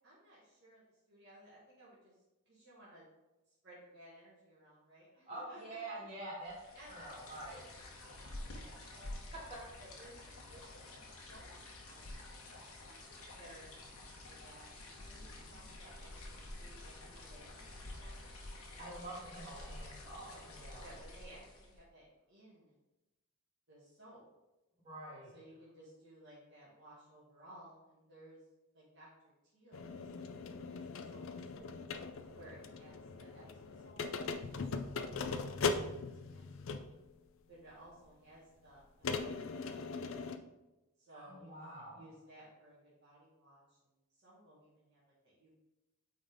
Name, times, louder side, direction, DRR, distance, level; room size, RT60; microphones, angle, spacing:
voice 1, 0.0-3.1 3.5-6.0 6.7-7.6 8.0-9.3 9.8-11.0 11.3-12.6 13.4-18.2 20.7-22.7 23.7-24.2 25.3-28.4 28.7-30.1 30.7-31.9 32.3-35.1 35.4-37.0 37.5-40.0 41.0-45.6, right 1 dB, 50° right, -8 dB, 1.8 m, -59 dB
voice 2, 5.3-6.5 6.9-7.6 18.8-20.9 24.8-25.4 41.1-42.0, right 2 dB, 30° right, -7 dB, 2.4 m, -47 dB
sound 1, 6.5-21.9, left 2 dB, 80° left, 1.3 m, -50 dB
sound 2, 29.7-37.0 37.9-38.0 39.0-40.4, left 4 dB, 60° left, 0.5 m, -40 dB
8.6 x 4.0 x 3.6 m, 1.0 s
head